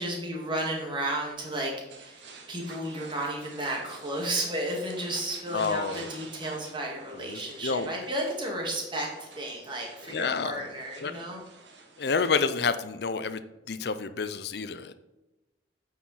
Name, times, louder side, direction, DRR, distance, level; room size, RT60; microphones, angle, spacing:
voice 1, 0.0-9.1 9.4-11.4, right 1 dB, 25° right, -1 dB, 2.0 m, -33 dB
sound 1, 1.9-12.5, right 3 dB, 75° right, 1.3 m, -49 dB
voice 2, 5.5-6.1 7.2-7.9 10.1-10.6 11.0-11.1 12.0-13.4 13.7-14.9, left 5 dB, 60° left, 11 dB, 0.5 m, -29 dB
8.9 x 4.8 x 4.2 m, 1.1 s
head